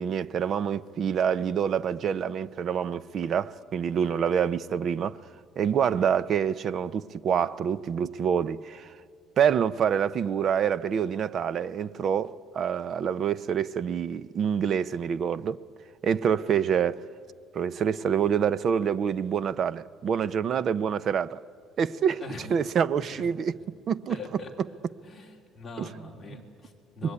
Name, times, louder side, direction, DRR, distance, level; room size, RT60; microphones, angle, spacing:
voice 1, 0.0-5.2 5.6-8.9 9.4-15.6 16.0-17.0 17.5-21.4 21.8-22.2 22.5-23.6 23.9-24.2 25.8-25.9 27.0-27.1, right 8 dB, 40° right, 0.6 m, -26 dB
voice 2, 22.9-23.2 24.1-24.5 25.0-27.1, left 3 dB, 10° left, 3.5 m, -42 dB
25.5 x 22.0 x 9.7 m
cardioid pair, 160°, 0 cm